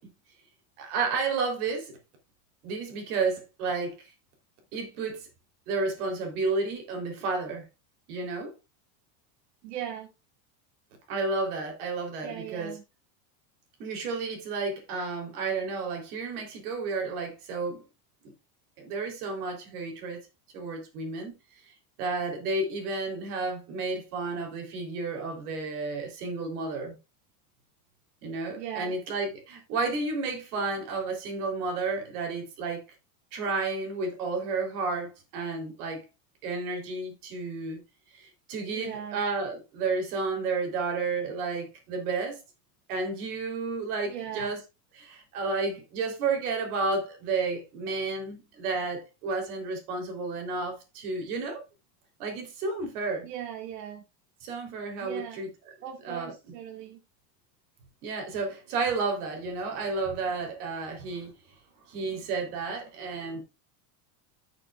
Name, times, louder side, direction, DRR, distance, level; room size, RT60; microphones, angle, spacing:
voice 1, 0.8-2.0 2.6-4.1 4.7-5.3 5.7-7.7 8.1-8.5 11.1-12.7 13.8-17.8 18.8-20.2 20.5-21.4 22.0-27.0 28.2-32.8 33.3-36.0 36.4-37.8 38.1-42.4 42.9-44.6 44.9-51.6 52.2-53.3 54.4-55.5 56.0-56.3 58.0-61.3 61.9-63.4, right 3 dB, 65° right, 3.6 m, -31 dB
voice 2, 9.6-10.1 12.2-12.8 28.6-28.9 38.7-39.2 44.1-44.5 53.2-54.0 55.0-55.4 55.8-57.0, right 10 dB, 90° right, 1.9 m, -38 dB
15.0 x 6.7 x 2.4 m
supercardioid pair, 180°, 48 cm